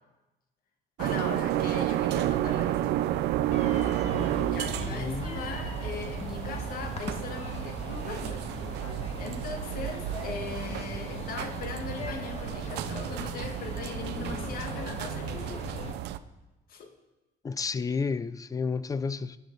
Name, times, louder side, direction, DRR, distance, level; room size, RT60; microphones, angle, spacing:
voice 1, 1.0-3.0 4.5-8.5 9.2-15.7 16.7-16.9, left 5 dB, 60° left, 1.7 m, -39 dB
sound 1, 1.0-16.2, right 13 dB, 80° right, 0.5 m, -31 dB
sound 2, 3.5-15.9, left 4 dB, 40° left, 1.5 m, -40 dB
voice 2, 4.9-5.4 17.4-19.4, left 5 dB, 20° left, 0.4 m, -31 dB
17.0 x 9.6 x 4.0 m
cardioid pair, 110°, 17 cm